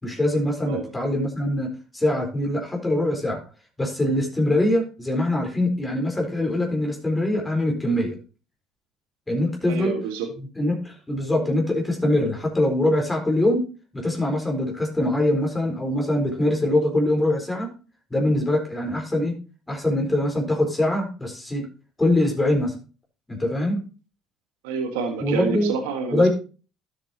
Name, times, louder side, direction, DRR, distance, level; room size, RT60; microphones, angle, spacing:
voice 1, 0.0-3.5 3.8-8.2 9.3-10.0 10.6-13.7 13.9-17.7 18.1-19.4 19.7-21.7 22.0-22.7 23.3-23.8 25.2-25.7 26.1-26.3, left 1 dB, 15° left, 0 dB, 4.2 m, -23 dB
voice 2, 9.7-10.3 24.6-26.3, right 5 dB, 90° right, 5 dB, 1.6 m, -28 dB
12.0 x 7.4 x 2.9 m, 0.34 s
supercardioid pair, 75°, 0 cm